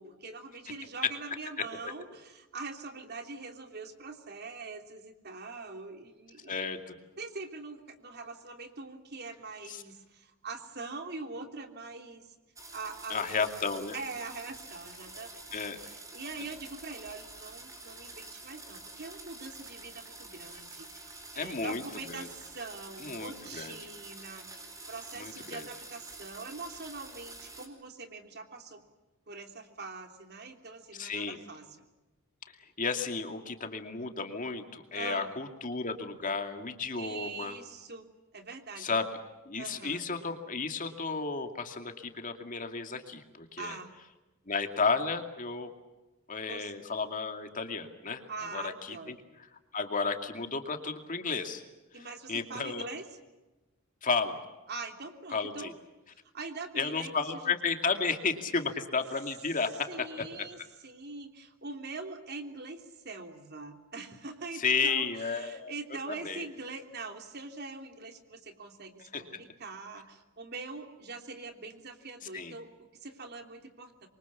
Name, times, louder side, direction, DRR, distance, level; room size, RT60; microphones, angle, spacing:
voice 1, 0.0-6.7 7.2-12.3 12.7-13.5 13.9-28.8 29.3-31.7 34.9-35.3 36.9-38.1 38.3-39.0 39.6-40.0 43.6-43.9 46.5-46.7 48.3-49.2 51.9-53.0 54.7-55.7 56.1-57.5 59.9-74.1, right 3 dB, 50° right, 5 dB, 3.2 m, -43 dB
voice 2, 6.5-7.0 9.7-9.8 13.1-14.0 15.5-15.8 21.4-21.8 22.1-22.3 23.0-23.7 25.2-25.6 30.9-31.4 32.6-37.5 38.8-39.1 39.5-43.8 44.5-45.7 46.3-48.2 48.5-49.2 49.7-51.6 51.9-52.8 54.0-54.4 55.3-55.7 56.8-60.1 64.6-66.0 66.2-66.5 69.1-69.2 72.3-72.5, left 4 dB, 40° left, 5 dB, 2.4 m, -33 dB
sound 1, 12.6-27.7, right 2 dB, 15° right, 4.4 m, -48 dB
27.0 x 24.0 x 7.1 m, 1.1 s
head